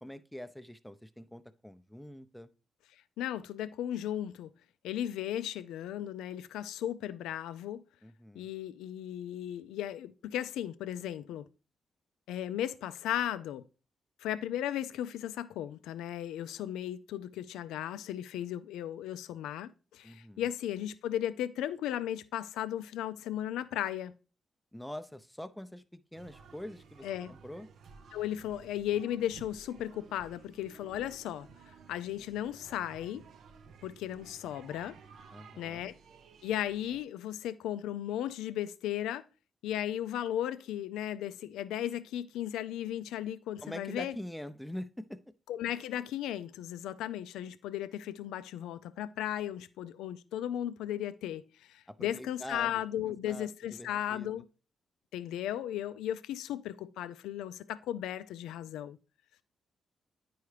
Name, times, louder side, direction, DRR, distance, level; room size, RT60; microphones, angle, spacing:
voice 1, 0.0-2.5 8.0-8.5 20.0-20.5 24.7-27.7 35.3-35.8 43.6-45.2 51.9-52.8 53.3-54.4, left 1 dB, 5° left, 0.6 m, -44 dB
voice 2, 3.2-4.5 4.8-7.8 8.4-11.4 12.3-13.6 14.2-24.1 27.0-27.3 28.1-31.5 31.9-33.2 33.8-35.0 35.6-35.9 36.4-39.2 39.6-44.1 45.5-54.4 55.1-59.0, left 11 dB, 85° left, 0.4 m, -36 dB
sound 1, 26.1-37.0, right 5 dB, 70° right, 0.6 m, -55 dB
9.3 x 4.7 x 3.2 m
supercardioid pair, 45°, 0 cm